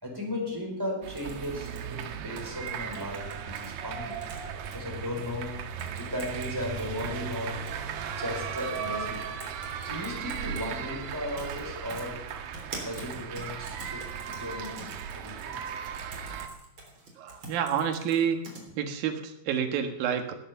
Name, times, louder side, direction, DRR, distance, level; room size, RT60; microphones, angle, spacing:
voice 1, 0.0-4.3 4.7-5.7 6.0-7.8 8.2-9.3 9.8-12.3 12.8-15.6, left 1 dB, 5° right, -1 dB, 4.3 m, -36 dB
sound 1, 1.0-16.5, right 7 dB, 85° right, 3.2 m, -37 dB
sound 2, 1.2-3.7 4.1-4.8 5.2-5.3 5.8-6.5 6.8-7.8 8.6-8.9 9.1-10.7 11.4-11.6 11.9-18.6, right 2 dB, 30° right, 3.8 m, -45 dB
voice 2, 17.2-18.4 18.8-20.3, right 8 dB, 65° right, 5 dB, 3.0 m, -28 dB
19.0 x 8.9 x 7.0 m, 0.82 s
omnidirectional pair, 4.6 m